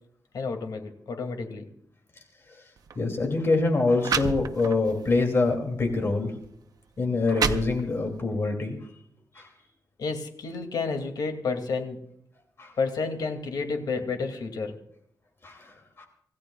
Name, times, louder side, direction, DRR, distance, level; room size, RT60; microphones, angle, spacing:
voice 1, 0.3-1.7 10.0-12.0 12.8-14.8, left 4 dB, 80° left, 5 dB, 2.5 m, -30 dB
sound 1, 2.8-3.0 3.7-3.8 4.0-4.9 5.5-5.7 6.4-6.5 7.0-8.2, right 6 dB, 70° right, 0.9 m, -29 dB
voice 2, 3.0-6.3 7.0-8.8 9.4-9.5 12.6-12.7 15.4-15.5 16.0-16.1, left 3 dB, 40° left, 3 dB, 2.7 m, -25 dB
26.5 x 16.5 x 2.4 m, 0.68 s
wide cardioid pair, 155°, 7 cm